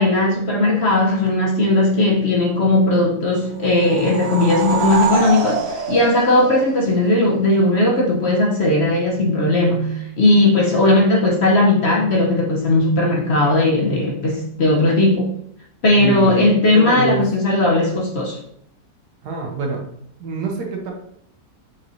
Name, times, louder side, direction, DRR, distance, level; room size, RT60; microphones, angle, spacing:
voice 1, 0.0-15.4 15.8-18.4, left 2 dB, 55° left, -2 dB, 0.8 m, -17 dB
sound 1, 3.6-7.2, right 5 dB, 55° right, 0.8 m, -25 dB
voice 2, 16.0-17.3 19.2-19.8 20.2-20.9, right 3 dB, 80° right, 1 dB, 1.5 m, -25 dB
6.1 x 2.9 x 2.6 m, 0.69 s
omnidirectional pair, 1.7 m